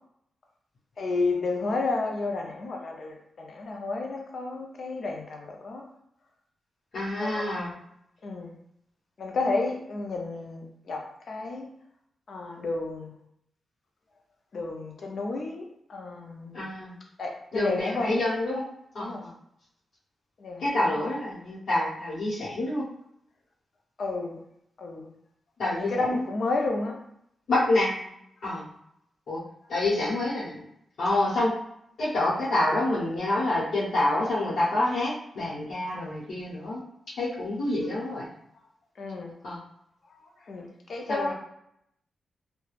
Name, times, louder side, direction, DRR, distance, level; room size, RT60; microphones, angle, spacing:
voice 1, 1.0-5.8 7.2-7.7 8.2-8.5 9.2-11.7 12.3-13.1 14.5-16.7 17.2-18.2 19.0-19.2 20.4-20.7 24.0-24.4 24.8-25.1 25.7-27.0 39.0-39.4 40.5-41.3, left 3 dB, 50° left, 1 dB, 0.5 m, -31 dB
voice 2, 6.9-7.7 16.5-17.0 17.5-18.6 18.9-19.3 20.6-22.8 25.6-26.3 27.5-28.1 28.4-28.7 29.3-29.4 29.7-30.7 31.0-31.5 32.0-36.8 37.2-38.3 39.4-39.6 41.1-41.3, left 2 dB, 65° left, -9 dB, 0.9 m, -27 dB
2.3 x 2.1 x 3.1 m, 0.74 s
wide cardioid pair, 165°, 0 cm